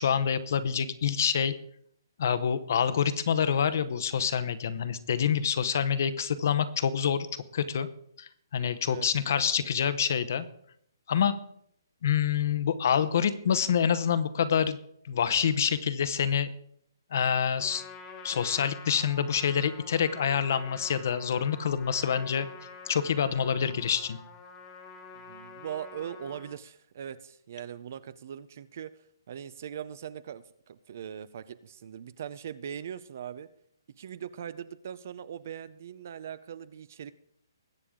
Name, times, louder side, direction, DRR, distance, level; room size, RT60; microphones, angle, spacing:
voice 1, 0.0-1.6 2.2-7.9 8.2-10.5 11.1-11.3 12.0-14.8 15.0-16.5 17.1-17.8 18.2-22.5 22.9-24.2, left 7 dB, 40° left, 14 dB, 0.8 m, -27 dB
Trumpet, 17.6-26.6, left 4 dB, 10° left, 1.3 m, -47 dB
voice 2, 25.1-28.9 29.3-33.5 34.0-37.1, right 9 dB, 35° right, 17 dB, 0.5 m, -40 dB
21.0 x 8.6 x 3.7 m, 0.69 s
hypercardioid pair, 175°, 2 cm